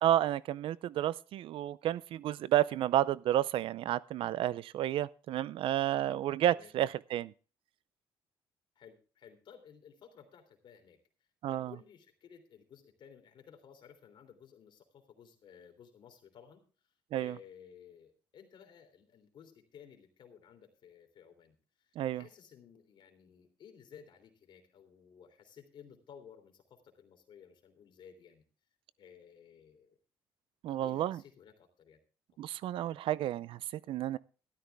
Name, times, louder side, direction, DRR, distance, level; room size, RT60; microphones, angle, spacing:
voice 1, 0.0-7.3 11.4-11.7 17.1-17.3 22.0-22.2 30.6-31.2 32.4-33.6 33.9-34.2, right 12 dB, 75° right, 0.5 m, -31 dB
voice 2, 8.7-16.6 17.1-28.4 29.0-30.0 30.6-32.0 32.3-32.4, left 7 dB, 60° left, 3.3 m, -56 dB
13.0 x 12.5 x 3.5 m
cardioid pair, 100°, 9 cm